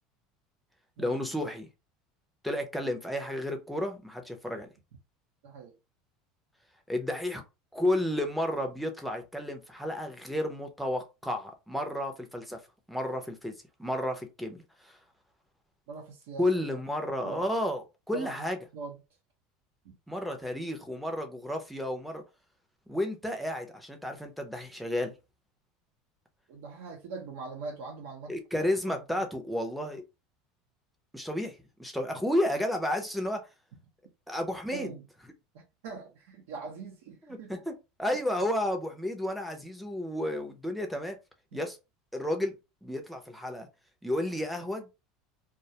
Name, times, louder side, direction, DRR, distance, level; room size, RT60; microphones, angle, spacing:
voice 1, 1.0-1.7 2.4-4.7 6.9-7.4 7.7-12.6 12.9-13.5 13.8-15.0 16.4-18.6 20.1-22.2 22.9-25.1 28.3-30.0 31.1-33.4 34.3-34.9 37.3-37.7 38.0-41.2 41.5-41.8 42.1-42.5 42.8-43.7 44.0-44.9, left 1 dB, ahead, 0.4 m, -32 dB
voice 2, 15.9-16.5 17.2-17.5 18.1-18.3 18.7-19.0 19.8-19.9 26.5-28.7 34.7-35.1 35.5-37.5 41.5-41.6, right 4 dB, 85° right, 0.7 m, -42 dB
2.3 x 2.1 x 2.7 m
cardioid pair, 170°, 0 cm